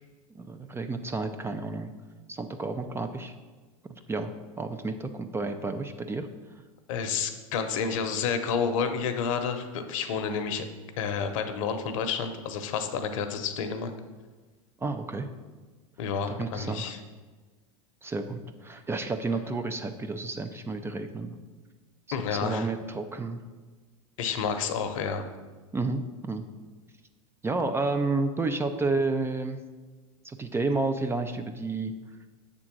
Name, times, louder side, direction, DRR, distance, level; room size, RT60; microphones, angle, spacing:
voice 1, 0.3-1.9 2.3-3.3 3.9-6.3 14.8-15.3 16.3-16.9 18.0-21.4 22.3-23.4 25.7-26.5 27.4-29.6 30.2-31.9, right 3 dB, 15° right, 8 dB, 0.4 m, -31 dB
voice 2, 6.9-10.6 11.0-13.9 16.0-17.0 22.1-22.7 24.2-25.2, left 6 dB, 70° left, 8 dB, 0.8 m, -30 dB
7.3 x 3.8 x 6.1 m, 1.3 s
hypercardioid pair, 110°, 17 cm